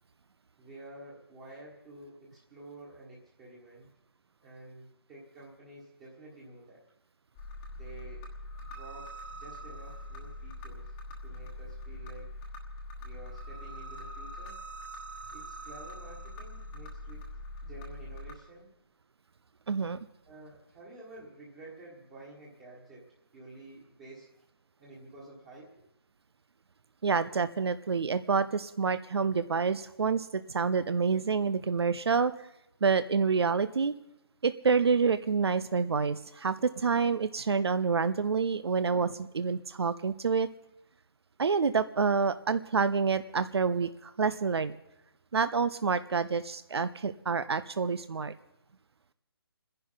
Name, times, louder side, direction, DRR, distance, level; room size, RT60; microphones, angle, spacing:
voice 1, 0.6-3.9 4.4-6.8 7.8-8.3 8.6-10.9 11.2-12.3 13.0-14.6 15.3-17.3 17.6-18.7 20.2-23.0 23.3-24.3 24.8-25.9, right 2 dB, 15° right, -5 dB, 1.6 m, -50 dB
sound 1, 7.4-18.3, left 1 dB, 10° left, 1.2 m, -43 dB
voice 2, 19.7-20.0 27.0-32.3 32.8-33.9 34.4-40.5 41.4-44.7 45.3-48.3, right 5 dB, 80° right, 13 dB, 0.6 m, -28 dB
30.0 x 11.0 x 4.0 m, 0.86 s
hypercardioid pair, 170°, 13 cm